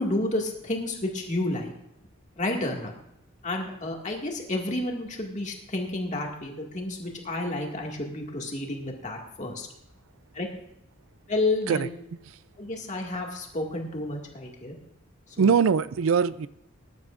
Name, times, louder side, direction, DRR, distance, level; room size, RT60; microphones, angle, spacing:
voice 1, 0.0-1.7 2.4-2.9 3.4-9.7 10.3-10.5 11.3-11.9 12.6-14.7 15.4-15.5, left 2 dB, 35° left, 2.1 m, -30 dB
voice 2, 15.4-16.5, right 6 dB, 65° right, 0.4 m, -22 dB
20.0 x 11.0 x 2.5 m
head